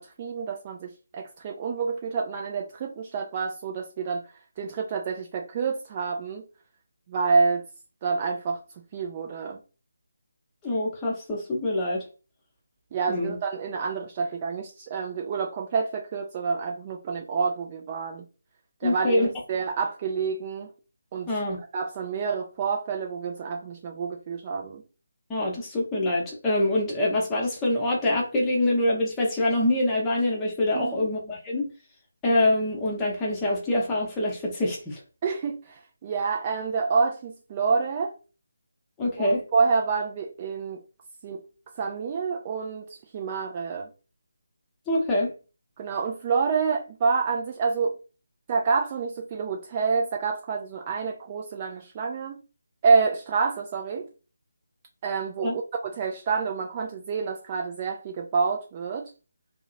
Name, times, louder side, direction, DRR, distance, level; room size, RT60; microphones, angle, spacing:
voice 1, 0.0-4.2 4.6-6.4 7.1-7.6 8.0-8.6 8.9-9.6 12.9-18.2 18.8-20.7 21.1-21.3 21.7-24.8 30.7-31.1 35.2-38.1 39.2-40.8 41.2-41.4 41.8-43.9 45.8-47.9 48.5-52.4 52.8-54.1 55.0-59.1, right 5 dB, 25° right, 0.3 m, -28 dB
voice 2, 10.6-12.0 13.1-13.3 18.8-19.3 21.3-21.6 25.3-31.7 32.2-35.0 39.0-39.4 44.9-45.3 55.4-55.5, left 1 dB, 10° left, 0.8 m, -25 dB
2.7 x 2.1 x 2.6 m
figure-of-eight pair, 155°, 0 cm